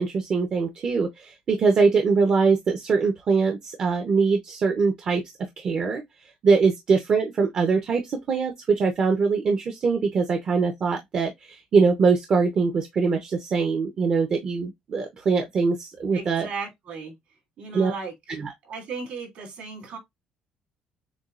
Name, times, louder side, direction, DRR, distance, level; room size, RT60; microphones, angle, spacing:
voice 1, 0.0-5.2 5.6-6.0 6.4-16.5 17.7-17.9 18.4-18.5, right 4 dB, 40° right, 0.9 m, -22 dB
voice 2, 16.1-17.2 17.6-18.1 18.7-20.0, right 4 dB, 60° right, 3.0 m, -36 dB
7.1 x 2.4 x 2.5 m
cardioid pair, 145°, 2 cm